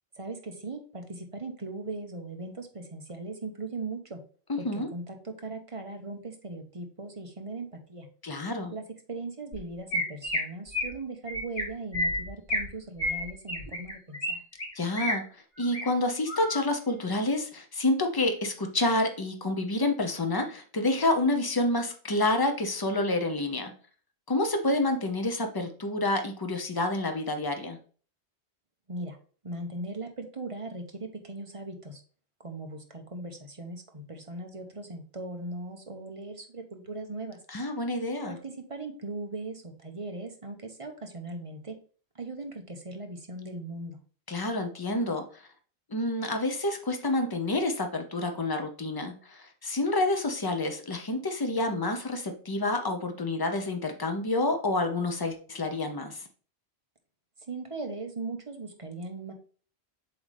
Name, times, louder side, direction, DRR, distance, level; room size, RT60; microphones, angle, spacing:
voice 1, 0.2-4.2 4.6-8.1 8.7-8.8 9.1-14.4 28.9-29.2 29.4-32.0 32.4-37.4 38.3-41.7 42.1-44.0 57.5-59.3, right 2 dB, 30° right, 4 dB, 1.0 m, -39 dB
voice 2, 4.5-4.9 8.2-8.7 14.7-15.3 15.6-23.7 24.3-27.8 37.5-38.4 44.3-45.4 45.9-56.2, left 2 dB, 25° left, 5 dB, 0.8 m, -28 dB
Chirp tweet, 9.5-9.6 9.9-10.4 10.7-10.9 11.3-11.6 11.9-12.7 13.0-14.3 14.6-15.1 15.6-15.8 16.3-16.6, left 1 dB, 60° left, 2.6 m, -30 dB
7.2 x 3.9 x 3.4 m, 0.41 s
omnidirectional pair, 1.1 m